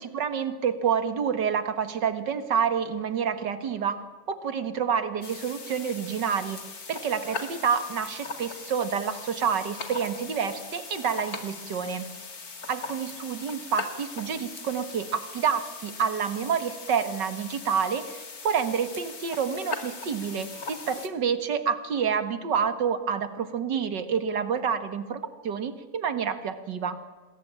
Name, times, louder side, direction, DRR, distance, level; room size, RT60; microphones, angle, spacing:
voice 1, 0.1-6.6 6.9-12.1 12.7-27.0, right 7 dB, 90° right, 10 dB, 2.3 m, -28 dB
sound 1, 5.2-21.1, left 4 dB, 55° left, 2.8 m, -40 dB
28.0 x 20.5 x 8.8 m, 1.2 s
omnidirectional pair, 1.8 m